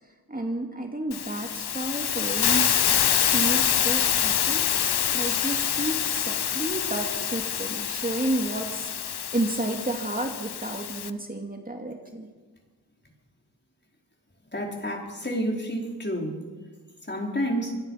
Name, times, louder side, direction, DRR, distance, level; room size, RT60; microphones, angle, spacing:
voice 1, 0.3-2.9 3.3-4.6 4.9-12.3, right 1 dB, 20° right, 2 dB, 2.5 m, -31 dB
Hiss, 1.1-11.1, left 9 dB, 85° left, 0.9 m, -26 dB
voice 2, 14.5-16.3 17.1-17.7, equal, 30° left, 0 dB, 5.1 m, -29 dB
26.5 x 20.5 x 5.9 m, 1.4 s
cardioid pair, 55°, 38 cm